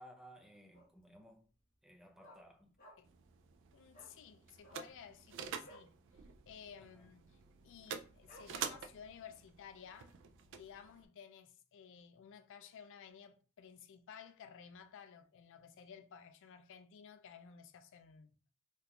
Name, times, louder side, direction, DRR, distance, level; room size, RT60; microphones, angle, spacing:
voice 1, 0.0-1.4 1.8-2.7 6.9-7.0, equal, ahead, 0.5 m, -58 dB
Dog, 0.7-1.2 1.4-1.5 1.8-3.2 3.5-3.6 3.9-4.2 4.5-6.0 6.3-6.5 6.7-7.1 7.6-7.7 8.3-9.1 9.5-9.6, equal, 35° left, 1.2 m, -59 dB
sound 1, 3.0-11.0, right 7 dB, 55° right, 0.4 m, -48 dB
voice 2, 3.7-5.9 6.4-10.2 10.6-18.4, left 7 dB, 60° left, 0.3 m, -55 dB
3.6 x 2.4 x 2.8 m
head